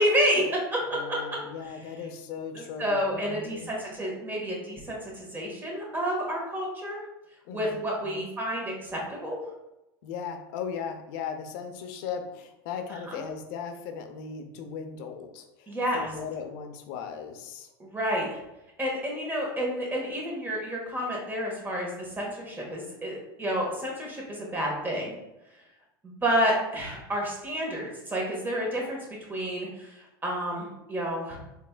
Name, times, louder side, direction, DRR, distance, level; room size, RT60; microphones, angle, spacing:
voice 1, 0.0-0.8 1.1-1.2 2.5-7.0 7.5-9.4 13.1-13.2 15.7-16.1 17.8-18.4 18.8-25.1 26.0-29.0 29.3-31.4, equal, 15° right, -2 dB, 1.4 m, -29 dB
voice 2, 0.9-3.8 7.5-7.8 8.0-8.3 10.0-17.7, left 6 dB, 65° left, 6 dB, 0.6 m, -37 dB
4.0 x 3.5 x 2.2 m, 0.93 s
supercardioid pair, 110°, 12 cm